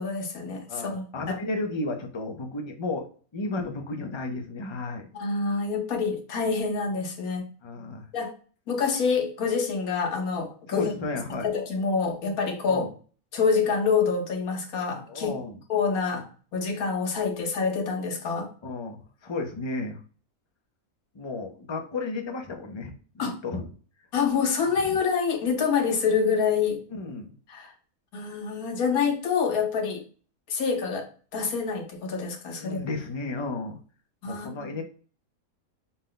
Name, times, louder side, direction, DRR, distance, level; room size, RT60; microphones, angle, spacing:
voice 1, 0.0-1.3 5.1-7.4 8.1-8.3 8.7-10.9 11.4-12.9 13.3-15.3 15.7-16.2 16.5-18.5 23.2-23.3 24.1-26.8 27.5-27.7 28.1-30.0 30.5-31.1 31.3-32.8 34.2-34.8, left 5 dB, 90° left, 2 dB, 1.4 m, -26 dB
voice 2, 0.7-3.1 3.3-5.1 7.6-8.1 10.7-11.5 12.7-12.9 15.1-15.6 18.6-20.0 21.1-23.7 24.9-25.0 26.9-27.3 32.6-33.8 34.2-34.8, left 3 dB, 40° left, 3 dB, 0.4 m, -33 dB
5.4 x 2.2 x 3.8 m, 0.41 s
omnidirectional pair, 1.5 m